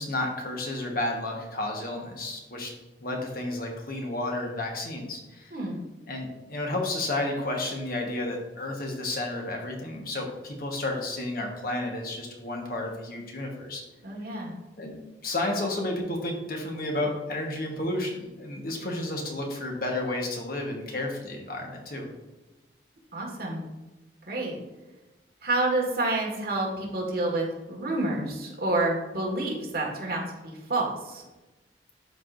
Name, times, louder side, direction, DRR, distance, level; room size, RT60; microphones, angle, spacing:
voice 1, 0.0-2.7 3.0-5.5 6.1-13.8 14.8-15.0 15.2-22.1, left 2 dB, 55° left, 1 dB, 1.3 m, -31 dB
voice 2, 14.0-14.5 23.1-23.6 24.3-24.6 25.4-31.2, right 2 dB, 55° right, -1 dB, 1.7 m, -29 dB
11.5 x 4.7 x 2.6 m, 1.1 s
head